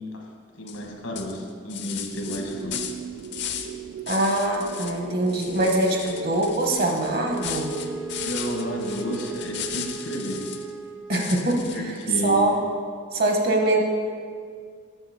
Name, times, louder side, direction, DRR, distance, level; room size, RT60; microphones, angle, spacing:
voice 1, 0.6-2.8 8.2-10.5 11.7-12.7, equal, 85° left, 1 dB, 1.2 m, -31 dB
sound 1, 0.7-0.9 1.2-3.8 4.1-5.0 5.3-10.7 11.1-12.0, left 9 dB, 55° left, 0.5 m, -36 dB
sound 2, 2.1-9.9, right 5 dB, 80° right, 0.3 m, -38 dB
voice 2, 4.1-7.7 11.1-12.0 12.2-12.6 13.1-13.8, right 1 dB, 50° right, 2 dB, 0.9 m, -23 dB
Wind instrument woodwind instrument, 7.3-11.5, right 3 dB, ahead, 0.3 m, -38 dB
7.2 x 6.6 x 4.2 m, 2.1 s
head